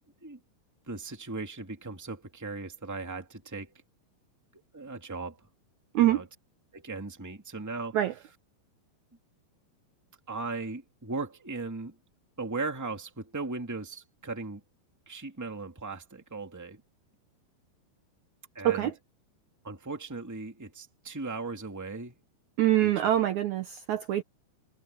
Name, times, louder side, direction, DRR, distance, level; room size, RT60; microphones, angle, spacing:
voice 1, 0.9-3.7 4.7-5.4 6.0-6.2 6.7-8.0 10.3-11.9 12.4-14.6 15.0-16.8 18.5-18.9 19.6-22.2 22.8-22.9, right 3 dB, 5° right, 1.4 m, -37 dB
voice 2, 22.6-24.2, right 12 dB, 85° right, 1.6 m, -24 dB
omnidirectional pair, 4.7 m